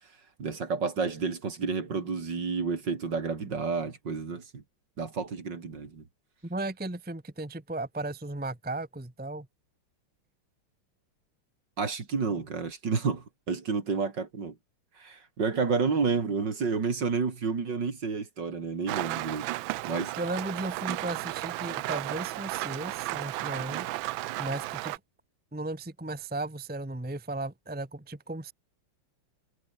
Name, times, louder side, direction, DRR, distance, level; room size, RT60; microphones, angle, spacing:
voice 1, 0.4-4.6 5.0-6.0 11.8-14.6 15.0-19.5 19.8-20.1, right 5 dB, 55° right, 3.3 m, -30 dB
voice 2, 6.4-9.5 20.2-24.0 24.4-25.0 25.5-28.5, right 2 dB, 5° right, 1.2 m, -35 dB
Rain, 18.9-25.0, right 17 dB, 75° right, 1.3 m, -34 dB
omnidirectional pair, 2.4 m